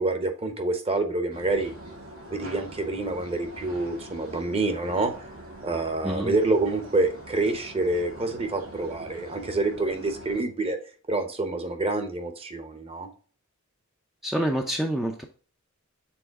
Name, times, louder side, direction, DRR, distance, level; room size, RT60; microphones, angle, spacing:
voice 1, 0.0-1.7 2.3-5.1 5.6-10.8 11.1-13.1, right 2 dB, 30° right, 7 dB, 1.0 m, -27 dB
sound 1, 1.3-10.4, right 1 dB, 85° right, 2.5 m, -43 dB
voice 2, 14.2-15.2, right 1 dB, ahead, 2 dB, 0.5 m, -27 dB
7.0 x 3.8 x 3.7 m, 0.40 s
head